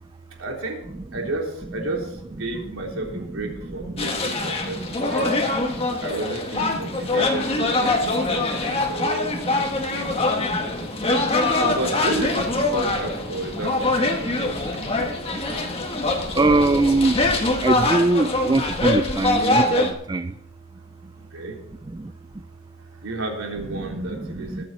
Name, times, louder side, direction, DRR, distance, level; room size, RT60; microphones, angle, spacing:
voice 1, 0.4-0.8 1.1-5.4 6.0-11.0 11.6-15.6 21.3-21.6 22.9-24.7, right 2 dB, 75° right, 0 dB, 3.6 m, -32 dB
sound 1, 4.0-19.9, left 2 dB, 30° left, 1.6 m, -24 dB
voice 2, 16.4-17.2 17.6-20.3 24.2-24.3 24.5-24.6, right 2 dB, 20° right, 10 dB, 0.4 m, -21 dB
21.0 x 8.0 x 4.2 m, 0.74 s
head